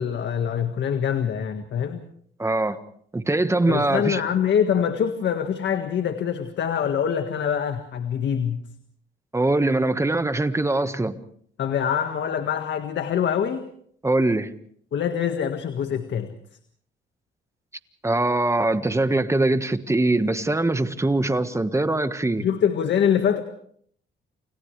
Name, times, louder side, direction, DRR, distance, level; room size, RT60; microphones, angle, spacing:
voice 1, 0.0-2.0 3.7-8.6 11.6-13.6 14.9-16.3 22.4-23.4, left 8 dB, 65° left, 1.7 m, -24 dB
voice 2, 2.4-2.8 3.1-4.2 9.3-11.2 14.0-14.5 18.0-22.5, right 2 dB, 15° right, 1.5 m, -22 dB
30.0 x 29.0 x 3.4 m
cardioid pair, 90°, 20 cm